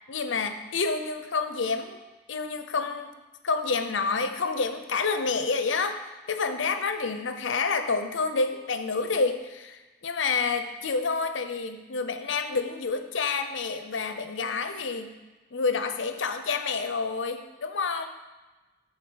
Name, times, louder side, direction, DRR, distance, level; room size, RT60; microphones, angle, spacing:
voice 1, 0.1-2.0 2.3-3.1 3.4-15.2 15.5-18.1, left 4 dB, 80° left, 8 dB, 0.7 m, -28 dB
9.3 x 4.3 x 6.3 m, 1.2 s
head